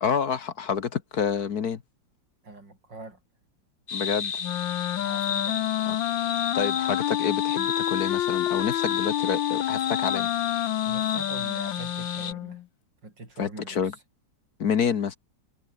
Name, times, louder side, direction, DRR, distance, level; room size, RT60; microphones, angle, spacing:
voice 1, 0.0-1.8 3.9-4.3 5.8-6.0 6.5-10.3 13.4-13.9 14.6-15.2, left 7 dB, 55° left, 1.7 m, -28 dB
voice 2, 2.4-3.2 5.0-5.8 10.8-12.6 13.0-14.0, right 2 dB, 70° right, 6.7 m, -43 dB
sound 1, 3.9-12.3, left 6 dB, 35° left, 1.1 m, -33 dB
Wind instrument woodwind instrument, 4.4-12.6, left 13 dB, 85° left, 1.5 m, -28 dB
omnidirectional pair, 2.0 m